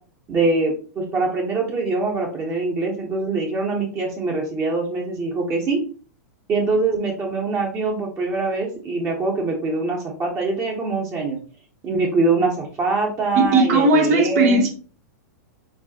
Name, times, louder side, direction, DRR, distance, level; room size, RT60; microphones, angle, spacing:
voice 1, 0.3-5.8 6.5-11.4 11.8-14.7, right 3 dB, 25° right, -1 dB, 1.2 m, -23 dB
voice 2, 13.3-14.7, right 2 dB, 60° right, 4 dB, 1.4 m, -17 dB
4.6 x 3.7 x 2.9 m, 0.39 s
hypercardioid pair, 125°, 10 cm